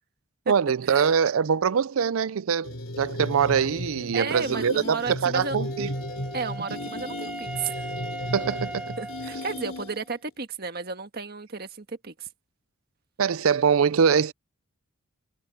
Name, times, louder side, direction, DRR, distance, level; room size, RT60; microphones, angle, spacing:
voice 1, 0.5-5.9 8.3-8.9 13.2-14.3, right 7 dB, 80° right, 0.5 m, -23 dB
sound 1, 2.6-10.1, left 1 dB, 70° left, 3.9 m, -35 dB
voice 2, 4.1-5.6 6.3-7.8 9.0-12.3, right 4 dB, 50° right, 1.6 m, -33 dB
Wind instrument woodwind instrument, 5.3-10.1, right 2 dB, 5° right, 1.0 m, -39 dB
head